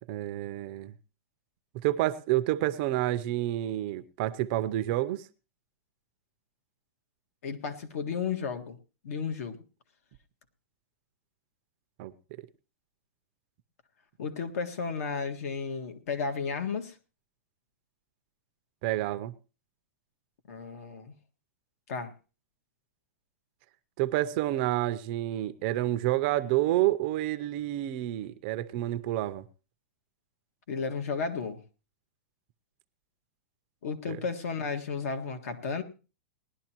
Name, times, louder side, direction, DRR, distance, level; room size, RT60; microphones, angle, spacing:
voice 1, 0.1-0.9 1.8-5.3 12.0-12.1 18.8-19.3 24.0-29.4 34.1-34.2, right 15 dB, 35° right, 0.6 m, -29 dB
voice 2, 7.4-8.8 9.0-9.6 14.2-17.0 20.5-21.1 21.9-22.1 30.7-31.6 33.8-35.8, left 5 dB, 65° left, 1.8 m, -33 dB
19.5 x 11.5 x 3.0 m
supercardioid pair, 165°, 9 cm